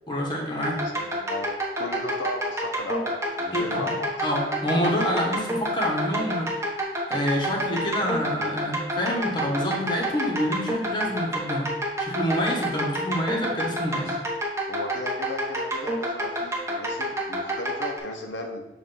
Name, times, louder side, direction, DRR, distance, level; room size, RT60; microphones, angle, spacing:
voice 1, 0.1-0.8 3.5-3.9 4.2-6.5 7.1-11.7 12.0-14.1, equal, 25° left, -1 dB, 1.1 m, -27 dB
sound 1, 0.6-18.0, equal, 15° right, 1.0 m, -28 dB
voice 2, 0.7-1.5 1.7-4.3 14.0-14.2 14.7-18.7, left 2 dB, 85° left, 3 dB, 0.8 m, -35 dB
7.4 x 2.6 x 5.4 m, 1.0 s
head